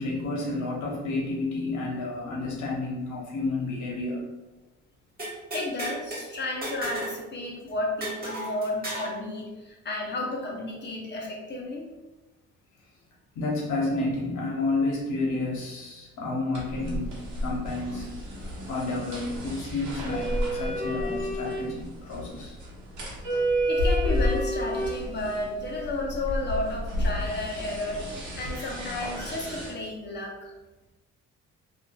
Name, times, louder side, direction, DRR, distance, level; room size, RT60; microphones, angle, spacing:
voice 1, 0.0-4.3 13.3-22.6, left 2 dB, 75° left, -2 dB, 0.9 m, -30 dB
sound 1, 5.2-6.2 6.6-7.2 7.4-7.5 8.0-9.1, right 1 dB, 30° right, 1.4 m, -34 dB
voice 2, 5.5-11.9 23.7-30.5, left 2 dB, 35° left, -1 dB, 0.7 m, -32 dB
sound 2, 16.5-29.7, equal, 80° right, 0.8 m, -30 dB
2.7 x 2.4 x 2.3 m, 1.1 s
cardioid pair, 90°, 30 cm